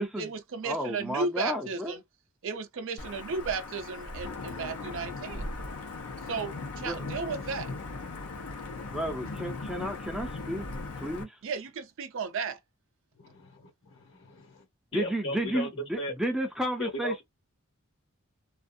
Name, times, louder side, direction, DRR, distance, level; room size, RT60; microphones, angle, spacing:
voice 1, 0.0-2.0 2.4-5.5 6.3-7.7 11.4-12.6, right 4 dB, 60° right, 0.5 m, -34 dB
voice 2, 0.6-1.9 6.8-7.0 8.9-10.7 11.0-11.4 14.9-17.2, right 1 dB, ahead, 0.4 m, -32 dB
Wind / Thunder / Rain, 3.0-11.2, left 3 dB, 80° left, 0.7 m, -38 dB
voice 3, 9.3-9.7 13.2-14.7 14.9-15.7 16.0-16.1 16.8-17.2, left 2 dB, 55° left, 1.1 m, -37 dB
2.4 x 2.3 x 2.6 m
head